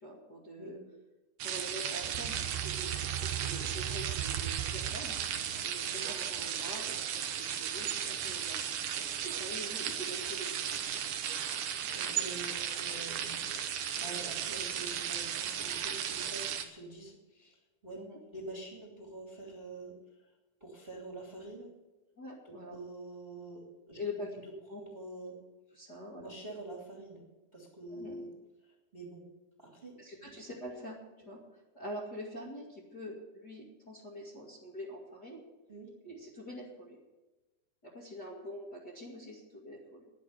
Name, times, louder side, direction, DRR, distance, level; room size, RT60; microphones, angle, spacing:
voice 1, 0.0-0.8 1.4-5.2 5.6-7.0 7.4-8.6 9.0-10.6 10.9-11.0 18.0-18.2 22.2-22.8 23.9-24.8 25.7-26.3 27.9-28.2 30.0-31.0 31.2-35.4 36.0-37.0 37.8-40.1, left 1 dB, 30° left, -4 dB, 2.2 m, -45 dB
sound 1, 1.4-16.6, right 9 dB, 65° right, 2.2 m, -35 dB
sound 2, 1.9-5.7, right 12 dB, 85° right, 2.5 m, -39 dB
voice 2, 11.9-18.0 18.3-20.3 20.6-21.7 22.4-24.0 24.4-25.4 26.2-27.2 27.5-28.3 28.6-29.3 29.6-30.4 31.2-31.3 35.7-35.9, right 2 dB, 15° right, 0 dB, 2.3 m, -46 dB
10.5 x 10.5 x 9.7 m, 1.2 s
omnidirectional pair, 4.5 m